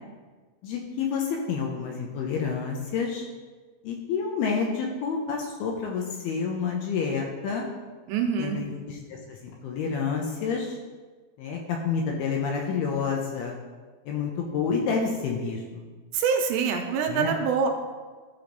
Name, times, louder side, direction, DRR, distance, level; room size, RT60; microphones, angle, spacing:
voice 1, 0.6-3.3 3.8-7.7 8.4-10.8 11.4-13.6 14.1-15.8 17.1-17.4, left 5 dB, 75° left, 0 dB, 2.5 m, -29 dB
voice 2, 8.1-8.7 16.1-17.7, right 6 dB, 80° right, 4 dB, 2.8 m, -25 dB
14.0 x 5.1 x 3.9 m, 1.4 s
omnidirectional pair, 5.3 m